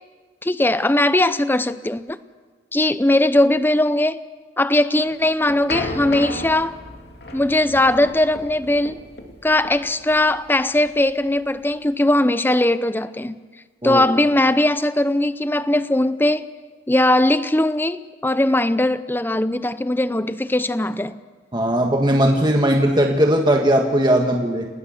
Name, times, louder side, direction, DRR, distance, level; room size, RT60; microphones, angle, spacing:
voice 1, 0.4-2.2 2.7-4.2 4.6-6.7 7.3-9.0 9.4-13.4 13.8-16.5 16.9-21.1, left 1 dB, 10° left, 0.7 m, -19 dB
sound 1, 5.0-11.9, left 2 dB, 65° left, 2.7 m, -34 dB
voice 2, 21.5-24.7, right 1 dB, 25° right, 1.6 m, -18 dB
29.0 x 19.0 x 6.6 m
head